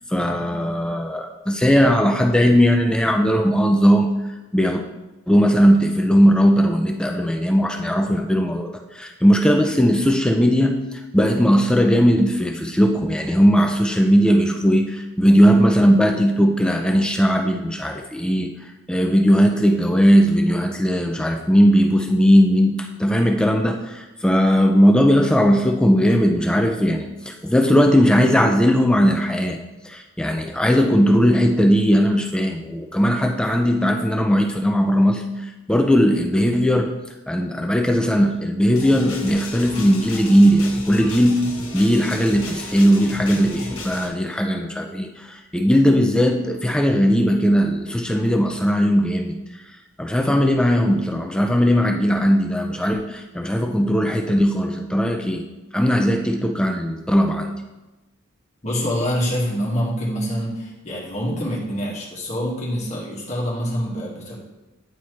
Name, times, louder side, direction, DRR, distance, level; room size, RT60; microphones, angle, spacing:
voice 1, 0.1-4.1 4.5-4.8 5.3-18.5 18.9-29.6 29.8-35.2 35.7-36.9 37.3-41.5 41.7-49.4 50.0-55.4 55.7-57.5, equal, 5° left, 3 dB, 0.3 m, -18 dB
sound 1, 38.8-44.1, left 2 dB, 75° left, 1.3 m, -34 dB
voice 2, 58.6-64.3, equal, 35° left, -4 dB, 1.6 m, -25 dB
9.3 x 4.3 x 3.1 m, 1.1 s
head